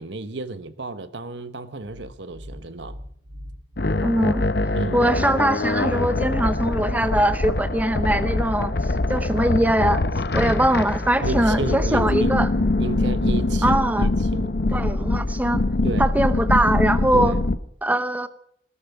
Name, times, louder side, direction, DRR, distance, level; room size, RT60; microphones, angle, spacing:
voice 1, 0.0-3.0 4.8-5.0 11.2-12.4 12.8-14.5 15.8-16.1 17.1-17.4, right 3 dB, 80° right, 1.1 m, -32 dB
sound 1, 1.9-14.7, equal, 45° right, 4.4 m, -39 dB
sound 2, 3.8-17.6, left 2 dB, 60° left, 0.8 m, -23 dB
voice 2, 4.0-4.4 4.9-10.0 10.3-12.5 13.6-14.1 14.7-15.6 16.0-17.3 17.8-18.3, right 1 dB, 10° right, 0.8 m, -22 dB
17.5 x 12.5 x 5.9 m
head